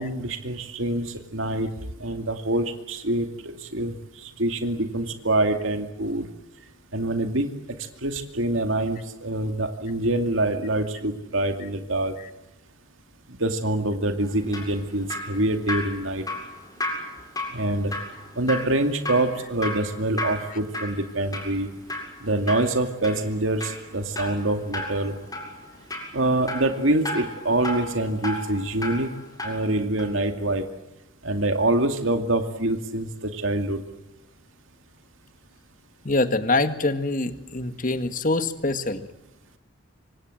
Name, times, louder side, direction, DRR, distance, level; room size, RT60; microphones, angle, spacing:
voice 1, 0.0-1.7 2.0-3.3 3.7-3.9 4.2-6.3 6.9-7.5 8.0-12.1 13.4-16.2 17.5-17.9 18.4-21.7 22.2-25.1 26.1-29.1 29.4-30.6 31.2-33.8, right 1 dB, 75° right, 6 dB, 2.4 m, -25 dB
Drip, 14.2-29.7 30.0-30.1, left 1 dB, 20° left, 7.4 m, -34 dB
voice 2, 36.0-39.1, left 2 dB, 40° left, 9 dB, 1.8 m, -24 dB
26.0 x 25.5 x 7.9 m, 0.94 s
head